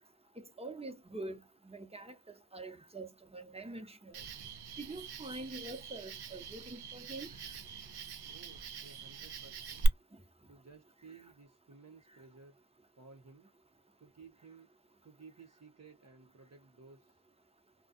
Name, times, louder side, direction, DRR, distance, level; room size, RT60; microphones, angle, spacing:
voice 1, 0.6-2.1 2.5-4.2 4.8-7.5, right 2 dB, 15° right, 0.9 m, -45 dB
Cricket, 4.1-9.9, right 4 dB, 70° right, 0.6 m, -42 dB
voice 2, 8.2-9.9 10.5-12.6 13.0-13.5 14.0-14.7 15.0-17.2, right 4 dB, 40° right, 0.8 m, -57 dB
2.3 x 2.3 x 2.6 m
cardioid pair, 45°, 40 cm